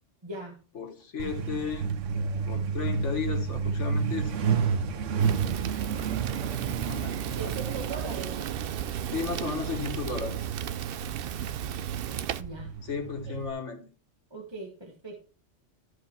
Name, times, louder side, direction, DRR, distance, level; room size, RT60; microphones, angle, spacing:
voice 1, 0.2-0.6 7.3-8.5 12.4-12.7 14.3-15.3, right 2 dB, 20° right, 1 dB, 1.4 m, -40 dB
voice 2, 0.7-1.9 2.5-4.3 6.8-7.6 9.1-10.5 12.8-13.8, left 5 dB, 75° left, 3 dB, 1.8 m, -34 dB
Truck, 1.2-13.5, right 6 dB, 80° right, 1.2 m, -31 dB
Fire, 5.2-12.4, right 11 dB, 60° right, 0.7 m, -35 dB
13.0 x 5.1 x 4.2 m, 0.37 s
omnidirectional pair, 1.2 m